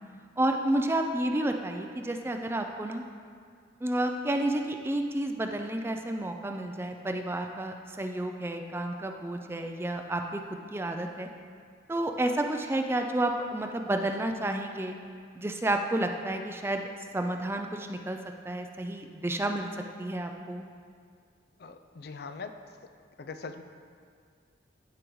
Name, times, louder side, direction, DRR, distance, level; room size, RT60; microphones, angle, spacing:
voice 1, 0.4-3.0 3.8-10.4 10.7-11.3 11.9-14.9 15.4-16.9 17.1-18.2 18.4-19.7 20.0-20.6, right 1 dB, 15° right, 5 dB, 0.3 m, -30 dB
voice 2, 21.6-22.5 23.2-23.6, left 4 dB, 55° left, 8 dB, 0.4 m, -41 dB
15.0 x 5.0 x 3.1 m, 2.1 s
head